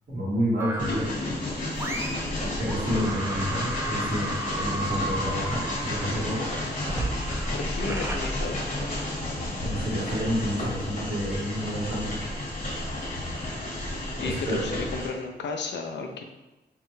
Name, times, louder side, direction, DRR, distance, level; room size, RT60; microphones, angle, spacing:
voice 1, 0.1-1.1 2.6-4.3 4.6-6.5 9.6-12.1 14.2-14.6, equal, 65° right, -6 dB, 1.2 m, -29 dB
sound 1, 0.6-1.2 1.7-2.4 2.7-9.1, right 1 dB, 15° right, 0.4 m, -33 dB
Train, 0.8-15.1, left 1 dB, 45° left, 0.9 m, -32 dB
voice 2, 7.5-8.6 14.2-16.2, left 4 dB, 85° left, 4 dB, 0.4 m, -33 dB
3.6 x 2.2 x 3.0 m, 1.0 s
wide cardioid pair, 110°, 18 cm